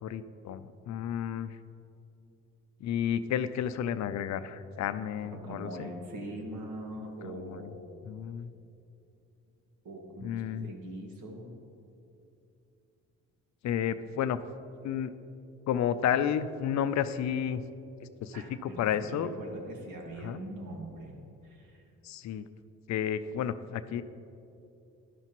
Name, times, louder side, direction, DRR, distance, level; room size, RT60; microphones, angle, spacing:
voice 1, 0.0-1.6 2.8-5.9 7.2-7.7 8.0-8.5 10.2-10.7 13.6-14.4 14.8-15.1 15.7-17.6 18.0-19.3 20.2-20.4 22.0-22.5 22.9-24.0, left 9 dB, 65° left, 12 dB, 0.5 m, -31 dB
voice 2, 5.3-7.9 9.8-11.5 18.3-21.2 21.4-21.8, right 1 dB, 75° right, 1 dB, 1.9 m, -42 dB
12.5 x 11.0 x 3.0 m, 2.7 s
cardioid pair, 90°, 30 cm